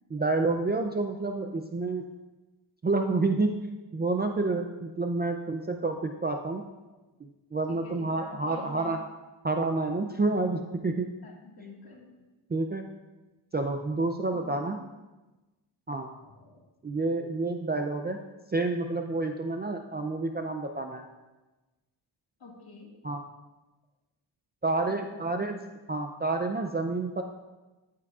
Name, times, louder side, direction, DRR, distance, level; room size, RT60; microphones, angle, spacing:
voice 1, 0.1-2.0 2.8-3.6 3.9-6.6 7.5-9.0 9.4-11.1 12.5-12.8 13.5-14.8 15.9-16.1 16.8-18.2 18.5-21.0 23.0-23.2 24.6-25.6 25.9-27.2, right 3 dB, 25° right, 4 dB, 0.4 m, -29 dB
voice 2, 7.7-9.0 11.2-12.3 14.0-14.8 16.2-16.6 16.9-17.0 22.4-22.9 24.9-25.3, left 3 dB, 50° left, -1 dB, 1.8 m, -49 dB
14.0 x 8.4 x 2.4 m, 1.1 s
wide cardioid pair, 125°, 46 cm